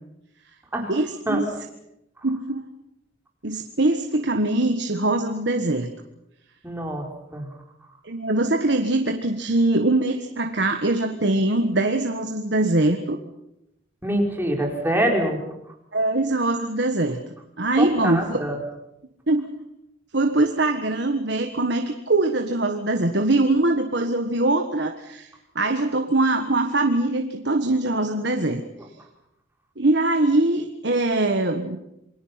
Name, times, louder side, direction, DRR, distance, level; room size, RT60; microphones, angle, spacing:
voice 1, 0.9-1.5 2.2-2.6 3.4-5.9 8.0-13.2 15.9-17.2 17.6-18.4 19.3-19.5 20.1-25.3 25.5-28.6 29.8-31.8, right 2 dB, 65° right, 5 dB, 1.6 m, -22 dB
voice 2, 6.6-7.5 14.0-15.4 17.8-18.6, right 1 dB, 10° right, 1 dB, 4.3 m, -25 dB
28.5 x 22.0 x 5.9 m, 0.86 s
head